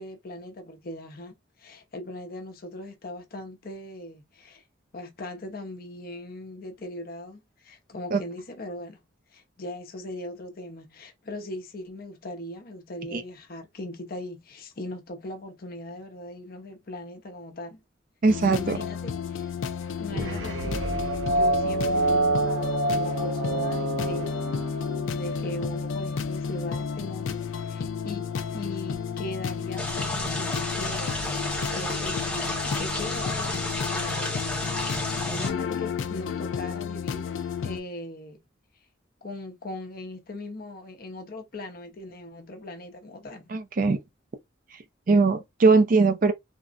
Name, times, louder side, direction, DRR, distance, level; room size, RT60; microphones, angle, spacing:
voice 1, 0.0-4.6 4.9-9.0 9.3-17.8 18.6-19.5 20.0-20.8 21.3-31.5 31.7-34.9 35.3-37.3 37.6-38.4 39.2-43.5, left 1 dB, 50° left, 0.7 m, -39 dB
voice 2, 18.2-18.8 43.5-44.0 45.1-46.3, right 3 dB, 45° right, 0.4 m, -20 dB
sound 1, 18.3-37.8, left 6 dB, 85° left, 0.4 m, -32 dB
sound 2, 20.1-25.6, right 2 dB, 80° right, 1.0 m, -27 dB
sound 3, 29.8-35.5, left 1 dB, 5° left, 0.7 m, -31 dB
3.5 x 2.0 x 2.4 m
head